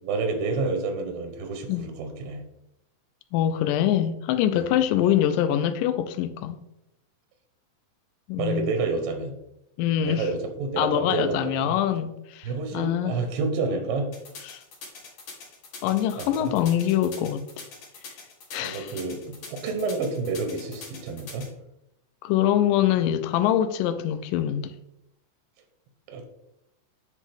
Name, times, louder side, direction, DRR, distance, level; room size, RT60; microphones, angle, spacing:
voice 1, 0.0-2.4 4.6-4.7 5.0-5.1 8.4-9.3 10.0-11.8 12.4-14.1 16.2-16.5 18.6-21.5 26.1-26.3, right 3 dB, 90° right, 2.6 m, -29 dB
voice 2, 3.3-6.6 8.3-8.7 9.8-10.3 10.8-13.2 14.4-14.6 15.8-17.7 18.5-18.9 22.2-24.7, left 11 dB, 85° left, 2.1 m, -24 dB
sound 1, 14.1-21.5, left 4 dB, 65° left, 3.1 m, -42 dB
9.8 x 3.6 x 3.4 m
omnidirectional pair, 4.0 m